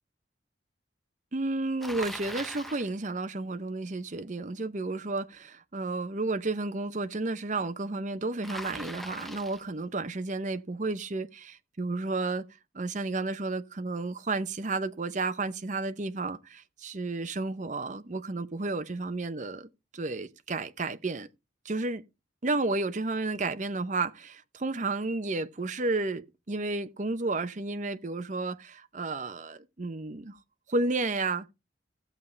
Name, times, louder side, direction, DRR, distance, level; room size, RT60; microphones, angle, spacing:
voice 1, 1.3-12.4 12.7-21.3 21.6-22.0 22.4-30.4 30.7-31.5, right 3 dB, 40° right, 0.7 m, -32 dB
Bicycle, 1.8-2.9 8.4-9.7, equal, ahead, 0.6 m, -40 dB
16.0 x 7.1 x 3.2 m
head